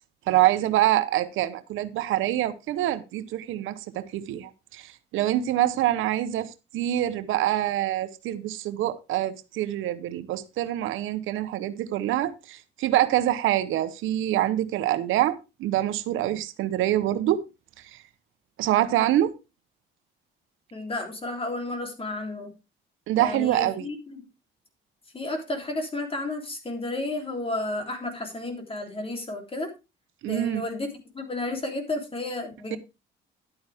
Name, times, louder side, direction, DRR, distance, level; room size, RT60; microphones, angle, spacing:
voice 1, 0.3-17.4 18.6-19.3 23.1-23.9 30.2-30.6 32.7-32.8, right 13 dB, 90° right, 0.9 m, -25 dB
voice 2, 20.7-22.5 23.1-24.2 25.1-29.7 30.2-30.9 31.1-32.8, left 2 dB, 30° left, 3.4 m, -32 dB
11.0 x 8.9 x 3.5 m
cardioid pair, 90°, 20 cm